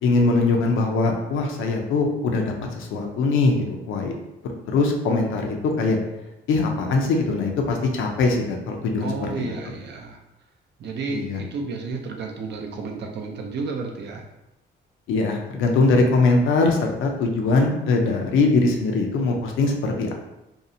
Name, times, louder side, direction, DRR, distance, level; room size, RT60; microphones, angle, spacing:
voice 1, 0.0-4.1 4.4-6.0 6.5-9.5 11.1-11.4 15.1-20.1, left 3 dB, 85° left, 2 dB, 0.5 m, -22 dB
voice 2, 9.0-10.2 10.8-14.2, right 4 dB, 60° right, 1 dB, 0.5 m, -32 dB
2.7 x 2.0 x 2.6 m, 0.94 s
cardioid pair, 90°, 20 cm